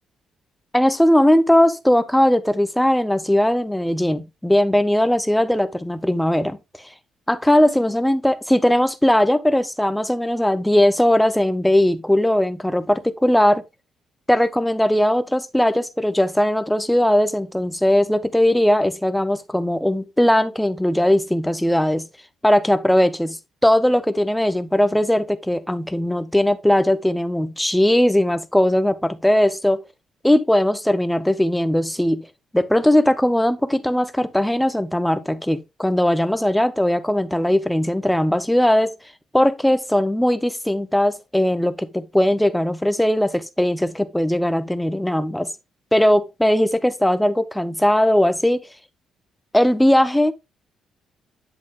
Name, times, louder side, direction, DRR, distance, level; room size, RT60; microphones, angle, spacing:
voice 1, 0.7-6.6 7.3-13.6 14.3-22.1 22.4-23.4 23.6-29.8 30.2-32.3 32.5-38.9 39.3-45.5 45.9-48.7 49.5-50.3, left 1 dB, 5° left, 0.7 m, -19 dB
8.5 x 7.8 x 2.4 m
cardioid pair, 110°, 0 cm